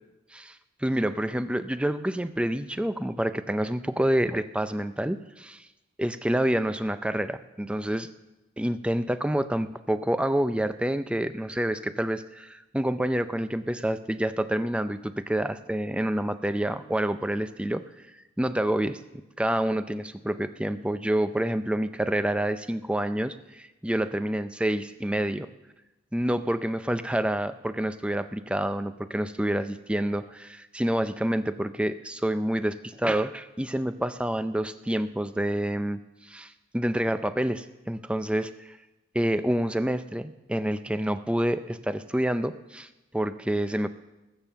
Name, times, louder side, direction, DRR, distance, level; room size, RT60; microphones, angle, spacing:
voice 1, 0.3-5.7 6.0-8.1 8.6-17.8 18.4-19.0 19.4-25.5 26.1-38.8 39.1-43.9, right 1 dB, 5° right, 11 dB, 0.4 m, -28 dB
20.5 x 7.5 x 6.8 m, 1.0 s
head